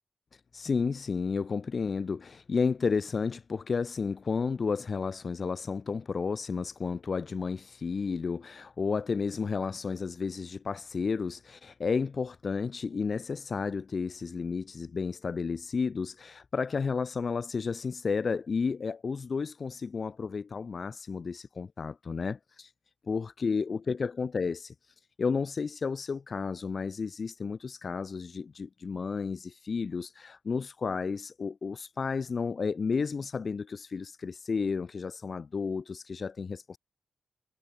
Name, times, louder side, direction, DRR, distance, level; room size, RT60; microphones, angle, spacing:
voice 1, 0.5-22.7 23.1-24.7 25.2-36.8, left 5 dB, 55° left, 2.1 m, -32 dB
cardioid pair, 65°, 0 cm